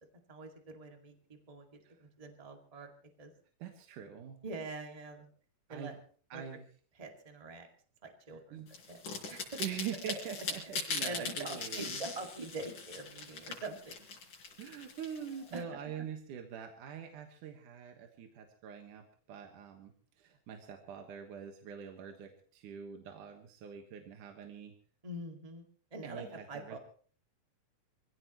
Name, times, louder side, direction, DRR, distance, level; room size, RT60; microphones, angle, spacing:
voice 1, 0.3-2.9 3.2-3.3 4.4-5.3 5.7-5.9 6.3-6.6 6.9-7.7 8.0-9.0 9.3-9.6 11.0-14.0 15.5-15.6 25.0-25.6 25.9-26.8, right 2 dB, 15° right, 3 dB, 1.6 m, -44 dB
voice 2, 3.6-4.4 5.7-6.0 6.3-6.6 8.5-8.7 9.6-12.0 14.6-19.9 20.2-24.7 26.0-26.8, right 8 dB, 75° right, 4 dB, 2.9 m, -44 dB
sound 1, 8.7-15.6, left 4 dB, 70° left, 5.4 m, -40 dB
25.5 x 16.5 x 3.0 m, 0.44 s
omnidirectional pair, 3.8 m